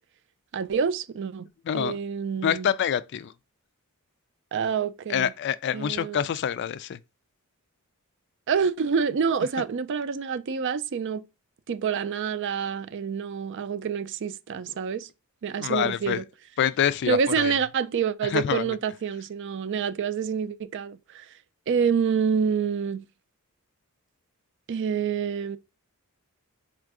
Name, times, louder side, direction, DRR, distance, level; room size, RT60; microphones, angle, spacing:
voice 1, 0.5-1.5 1.7-2.7 4.5-5.3 5.7-6.2 8.5-11.2 11.7-15.1 15.4-16.2 17.1-21.3 21.7-23.0 24.7-25.6, right 6 dB, 55° right, 0.4 m, -27 dB
voice 2, 1.7-2.0 2.4-3.3 5.1-7.0 15.6-16.2 16.6-17.6 18.3-18.8, left 9 dB, 50° left, 0.3 m, -26 dB
4.3 x 2.5 x 4.6 m
head